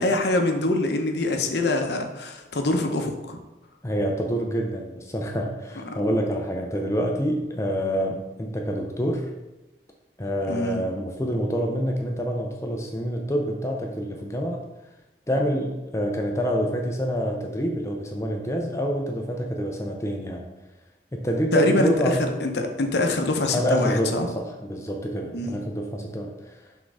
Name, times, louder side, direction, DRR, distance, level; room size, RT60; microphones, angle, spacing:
voice 1, 0.0-3.4 5.8-6.0 10.5-10.8 21.5-24.3 25.3-25.6, left 2 dB, 75° left, 5 dB, 0.8 m, -24 dB
voice 2, 3.8-9.3 10.2-14.6 15.3-20.4 21.1-22.2 23.5-26.6, equal, 15° left, 2 dB, 0.5 m, -27 dB
6.2 x 3.7 x 4.8 m, 1.0 s
head